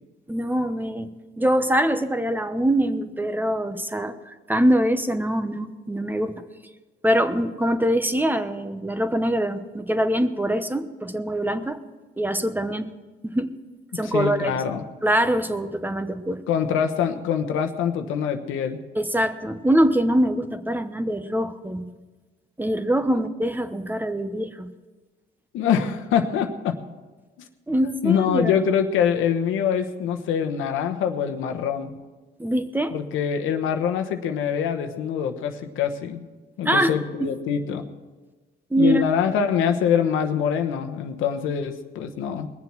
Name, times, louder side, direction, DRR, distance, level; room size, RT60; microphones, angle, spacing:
voice 1, 0.3-1.1 1.4-6.4 7.0-11.8 12.2-12.9 13.2-13.5 13.9-14.6 15.0-16.4 19.0-21.9 22.6-24.7 27.7-28.6 32.4-32.9 36.6-36.9 38.7-39.0, right 1 dB, 10° right, 9 dB, 0.9 m, -23 dB
voice 2, 14.0-14.8 16.5-18.8 23.1-23.2 25.5-26.8 28.0-31.9 32.9-36.2 36.6-37.8 38.8-42.5, left 8 dB, 90° left, 5 dB, 1.1 m, -24 dB
20.5 x 7.4 x 6.1 m, 1.3 s
cardioid pair, 90°, 20 cm